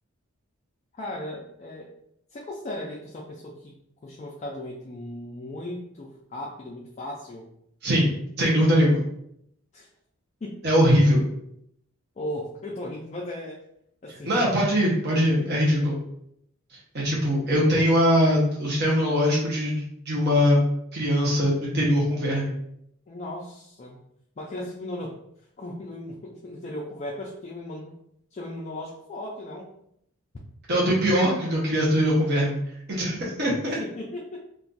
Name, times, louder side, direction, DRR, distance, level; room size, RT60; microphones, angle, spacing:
voice 1, 0.9-1.9 2.3-3.8 4.0-7.5 9.7-9.9 10.4-10.7 12.2-13.6 14.0-14.5 15.4-15.5 23.1-24.0 24.4-25.2 25.6-28.0 28.3-29.7 33.7-34.5, left 1 dB, 30° left, -3 dB, 0.3 m, -36 dB
voice 2, 8.4-9.0 10.6-11.2 14.3-16.0 16.9-20.6 20.9-22.5 30.7-32.6 32.9-33.5, equal, 50° right, -4 dB, 0.8 m, -21 dB
2.5 x 2.3 x 3.9 m, 0.74 s
head